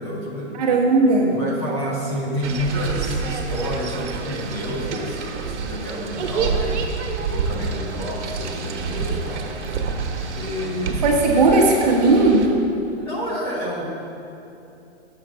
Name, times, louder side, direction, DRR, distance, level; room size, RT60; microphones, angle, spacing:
voice 1, 0.0-0.6 1.3-9.8 10.3-11.0 13.0-13.8, equal, 25° left, -3 dB, 0.7 m, -29 dB
voice 2, 0.6-1.4 10.9-12.5, right 2 dB, 35° right, -1 dB, 0.9 m, -17 dB
sound 1, 2.4-12.5, right 5 dB, 90° right, 1.0 m, -28 dB
6.4 x 4.5 x 6.0 m, 2.8 s
hypercardioid pair, 175°, 34 cm